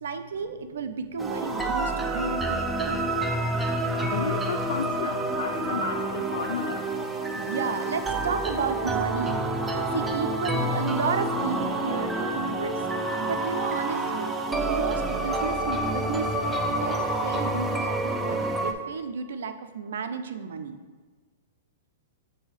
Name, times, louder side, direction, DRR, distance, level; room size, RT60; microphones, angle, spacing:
voice 1, 0.0-3.1 7.3-9.5 9.9-12.8 13.2-14.3 14.7-20.8, right 5 dB, 80° right, 9 dB, 0.5 m, -33 dB
sound 1, 1.2-18.7, right 2 dB, 10° right, 0.5 m, -28 dB
voice 2, 4.0-6.9 13.2-13.3, left 6 dB, 80° left, 5 dB, 0.4 m, -34 dB
7.2 x 2.7 x 4.9 m, 1.4 s
hypercardioid pair, 135°, 0 cm